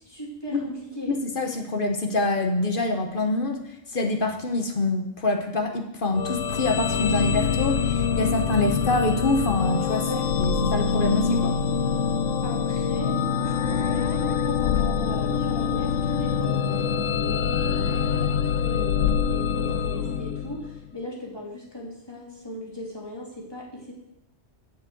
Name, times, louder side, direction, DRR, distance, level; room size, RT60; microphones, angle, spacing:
voice 1, 0.0-1.1 10.0-10.3 12.4-23.9, equal, 20° left, -4 dB, 2.6 m, -38 dB
voice 2, 1.1-3.6 3.9-10.0 10.4-11.6, left 2 dB, 45° left, 4 dB, 1.2 m, -25 dB
sound 1, 6.1-20.9, left 7 dB, 90° left, 1.1 m, -25 dB
7.3 x 6.9 x 7.8 m, 0.84 s
omnidirectional pair, 1.3 m